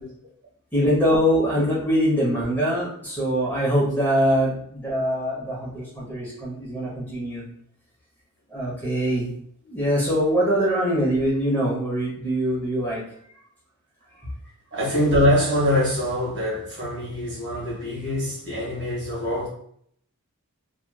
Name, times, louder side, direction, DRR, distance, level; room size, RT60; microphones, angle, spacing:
voice 1, 0.7-7.4 8.5-9.3 9.6-13.0, equal, 10° left, 1.0 m, -23 dB
voice 2, 14.7-19.5, equal, 55° right, 1.4 m, -24 dB
3.0 x 2.5 x 2.3 m
head